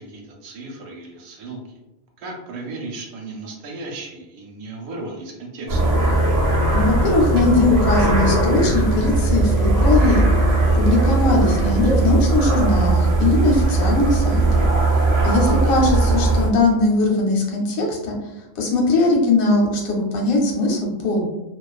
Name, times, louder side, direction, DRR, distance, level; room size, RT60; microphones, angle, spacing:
voice 1, 0.0-1.6 2.2-5.8 15.4-15.8, right 2 dB, 90° right, 0 dB, 1.0 m, -35 dB
sound 1, 5.7-16.5, right 2 dB, 40° right, 0.6 m, -18 dB
voice 2, 6.7-10.2 10.7-14.6 15.2-18.1 18.6-21.2, left 2 dB, 85° left, -1 dB, 1.1 m, -20 dB
2.4 x 2.2 x 2.3 m, 0.95 s
omnidirectional pair, 1.4 m